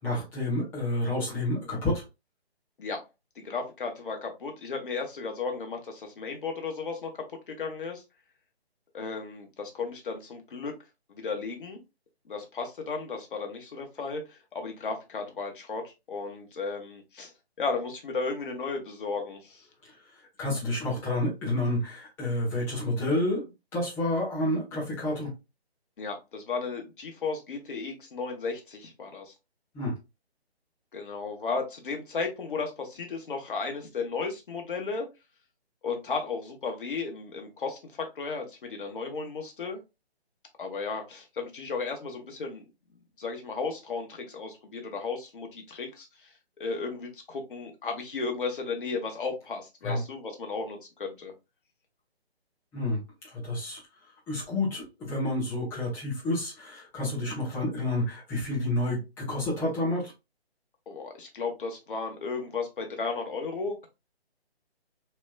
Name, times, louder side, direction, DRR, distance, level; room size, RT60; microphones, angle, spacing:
voice 1, 0.0-2.0 20.4-25.3 29.7-29.9 49.8-50.0 52.7-53.8 54.3-60.1, left 1 dB, 5° left, 0.9 m, -29 dB
voice 2, 3.4-8.0 8.9-10.7 11.1-11.8 12.3-17.3 17.6-19.6 26.0-29.3 30.9-35.1 35.8-39.8 40.6-42.6 43.2-46.3 46.6-51.3 60.9-63.9, left 4 dB, 55° left, 1.1 m, -34 dB
3.2 x 2.9 x 2.3 m
figure-of-eight pair, 150°, 32 cm